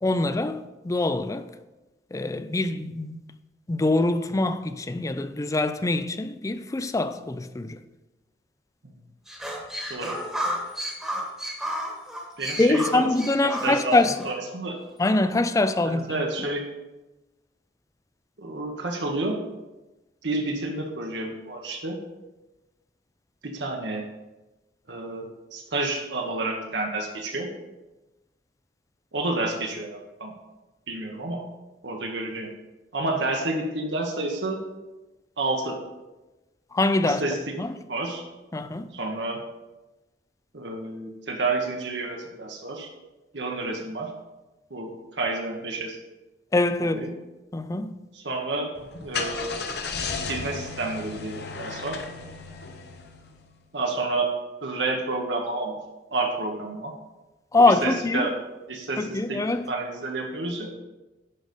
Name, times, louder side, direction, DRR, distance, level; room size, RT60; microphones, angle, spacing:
voice 1, 0.0-0.6 0.8-1.5 2.1-3.3 3.7-7.8 12.6-14.1 15.0-16.2 36.7-37.2 37.6-37.7 38.5-38.9 46.5-47.1 47.5-47.9 57.5-58.3 59.0-59.7, left 2 dB, 20° left, 0.4 m, -24 dB
sound 1, 9.3-14.3, equal, ahead, 1.3 m, -32 dB
voice 2, 12.4-13.1 13.4-14.0 14.2-14.8 15.8-16.6 18.4-19.4 20.2-22.0 23.4-24.0 24.9-27.5 29.1-30.3 30.9-31.4 31.8-32.5 32.9-34.6 35.4-35.8 37.0-37.5 37.9-38.2 38.9-39.4 40.5-42.9 43.3-44.1 44.7-46.0 46.8-47.1 48.1-48.7 49.0-49.5 50.3-52.0 53.7-54.3 54.6-55.8 56.1-56.9 57.6-58.3 58.7-59.4 59.7-60.7, right 2 dB, 75° right, 1.1 m, -29 dB
Car / Engine starting, 48.8-53.4, left 4 dB, 65° left, 0.9 m, -34 dB
11.0 x 4.0 x 5.2 m
head